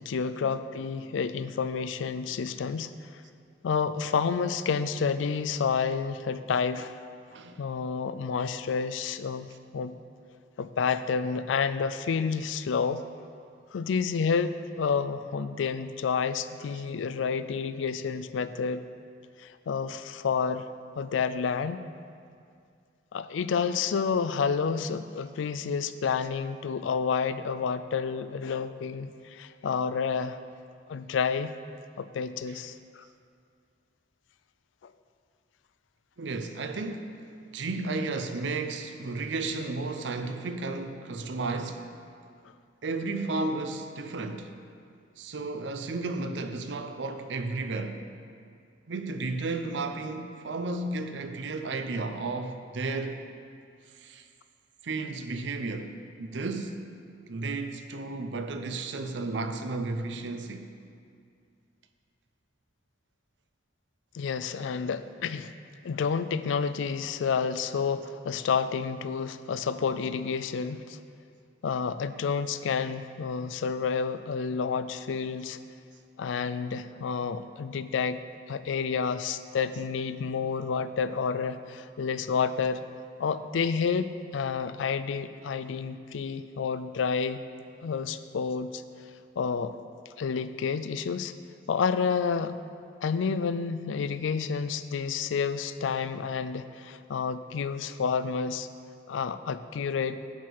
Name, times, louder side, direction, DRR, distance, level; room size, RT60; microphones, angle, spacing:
voice 1, 0.0-2.9 3.6-7.0 7.6-9.5 9.7-9.9 10.6-13.0 13.7-18.8 19.4-20.7 21.0-21.8 23.1-30.4 30.9-31.5 32.0-33.1 34.8-34.9 64.1-65.5 65.8-71.0 71.6-75.6 76.2-78.2 78.5-82.8 83.2-87.4 87.8-88.8 89.4-89.7 90.2-91.3 91.7-92.5 93.0-98.7 99.1-100.2, left 6 dB, 90° left, 0.4 m, -29 dB
voice 2, 7.3-7.7 32.5-32.6 36.2-37.2 37.5-41.9 42.8-44.5 45.2-48.0 48.9-53.2 54.0-54.3 54.8-56.8 57.3-60.7, right 3 dB, 70° right, 0.6 m, -33 dB
10.5 x 6.1 x 4.7 m
head